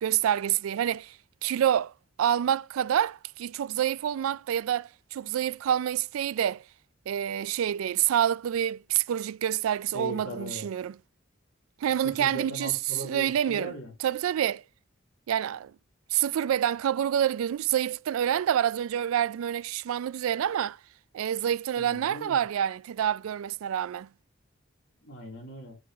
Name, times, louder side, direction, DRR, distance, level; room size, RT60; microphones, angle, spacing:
voice 1, 0.0-1.2 1.4-1.9 2.2-6.6 7.1-11.0 11.8-12.7 13.0-13.7 14.0-14.6 15.3-15.7 16.1-20.8 21.1-24.1, right 10 dB, 85° right, 0.3 m, -27 dB
voice 2, 9.9-10.7 12.0-13.9 21.8-22.4 25.0-25.8, right 1 dB, 65° left, 3.3 m, -39 dB
9.8 x 3.8 x 4.9 m
head